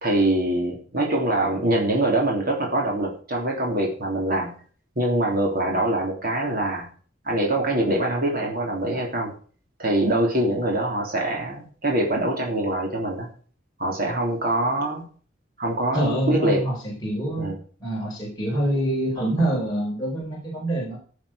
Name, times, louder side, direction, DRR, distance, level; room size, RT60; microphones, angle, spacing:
voice 1, 0.0-4.5 4.9-6.9 7.2-9.3 9.8-13.3 13.8-15.0 15.6-16.6 17.4-17.5, right 1 dB, 50° right, 0 dB, 3.2 m, -24 dB
voice 2, 15.9-17.5 17.8-21.0, right 1 dB, 20° left, -5 dB, 4.7 m, -26 dB
15.0 x 7.2 x 5.2 m, 0.43 s
head